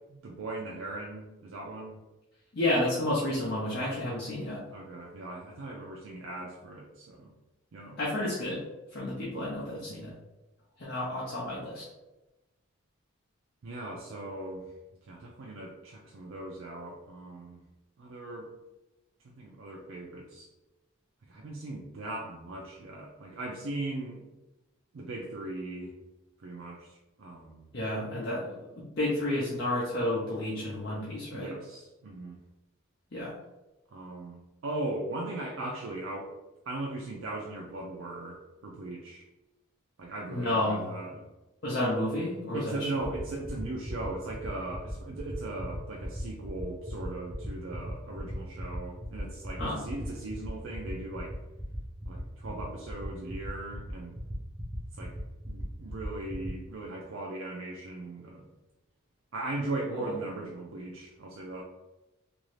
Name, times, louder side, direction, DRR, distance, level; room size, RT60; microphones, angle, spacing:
voice 1, 0.1-2.0 4.7-7.3 7.7-8.0 13.6-14.7 15.1-17.6 18.0-18.5 19.2-20.5 21.2-24.2 24.9-25.9 26.4-27.7 31.3-32.4 33.9-36.3 36.7-39.2 40.0-41.3 42.5-51.4 52.1-54.2 55.0-55.1 55.5-58.4 59.3-61.6, right 2 dB, 70° right, -1 dB, 0.4 m, -38 dB
voice 2, 2.5-4.6 8.0-8.6 8.9-10.1 10.8-11.9 27.7-28.7 29.0-31.5 33.1-33.3 40.3-40.8 41.6-42.9 49.6-49.8 59.9-60.1, left 1 dB, 50° left, -6 dB, 0.6 m, -31 dB
sound 1, 43.1-56.5, equal, 10° right, 0.5 m, -40 dB
3.0 x 2.6 x 3.1 m, 1.0 s
head